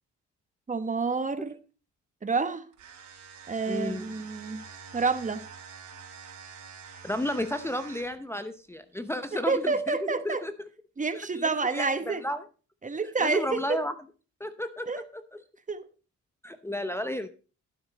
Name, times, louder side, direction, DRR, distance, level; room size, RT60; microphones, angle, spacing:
voice 1, 0.7-1.6 2.2-2.6 3.5-4.6 4.9-5.4 9.3-10.4 11.0-12.2 12.8-13.8 14.9-15.0 15.7-15.8, right 4 dB, 25° right, 1.0 m, -28 dB
sound 1, 2.7-8.3, right 6 dB, 75° right, 3.8 m, -47 dB
voice 2, 3.7-4.1 7.0-10.5 11.3-12.4 13.2-13.9 14.4-15.2 16.4-17.3, left 1 dB, 10° left, 0.7 m, -32 dB
12.5 x 8.0 x 4.0 m
cardioid pair, 90°, 30 cm